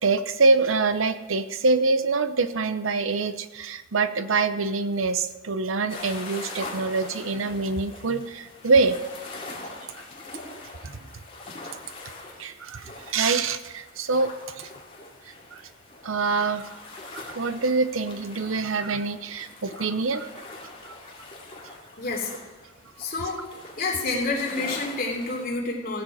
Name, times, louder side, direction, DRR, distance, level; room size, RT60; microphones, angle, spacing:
voice 1, 0.0-9.0 10.8-11.0 12.4-14.7 15.3-15.6 16.0-16.7 17.1-20.3 20.9-21.0, right 3 dB, 85° right, 11 dB, 0.8 m, -25 dB
sound 1, 5.9-25.5, left 2 dB, 30° left, 2.6 m, -43 dB
voice 2, 22.0-22.3 23.0-23.4 23.8-26.0, left 3 dB, 45° left, -2 dB, 3.1 m, -28 dB
16.0 x 8.8 x 4.9 m, 1.2 s
head